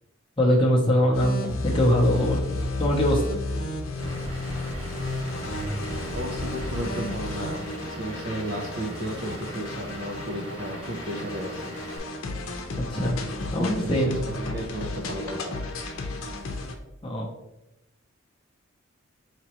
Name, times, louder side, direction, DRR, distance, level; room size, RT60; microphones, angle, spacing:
voice 1, 0.4-3.4 12.8-13.2 13.5-14.2 17.0-17.3, equal, 25° left, -3 dB, 0.6 m, -23 dB
sound 1, 1.1-16.7, left 2 dB, 80° left, 0.7 m, -32 dB
Vehicle / Engine, 4.0-12.0, right 2 dB, 25° right, 0.9 m, -40 dB
voice 2, 6.1-11.6 13.6-14.0 14.3-15.6, equal, 45° right, 1 dB, 0.5 m, -34 dB
5.1 x 2.9 x 2.9 m, 0.90 s
head